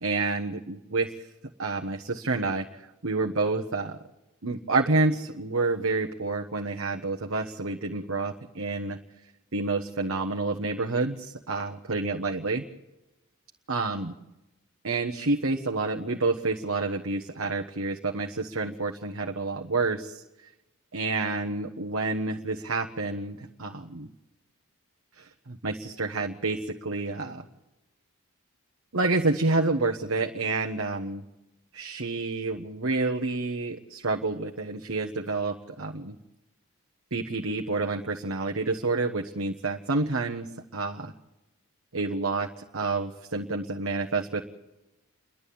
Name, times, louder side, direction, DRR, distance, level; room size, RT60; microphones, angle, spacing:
voice 1, 0.0-1.3 1.6-4.0 4.4-9.0 9.5-12.6 13.7-14.1 14.8-20.2 20.9-24.1 25.2-27.4 28.9-31.2 31.7-36.1 37.1-41.1 41.9-44.4, right 3 dB, 70° right, 2 dB, 1.3 m, -29 dB
29.0 x 11.5 x 8.6 m, 0.99 s
head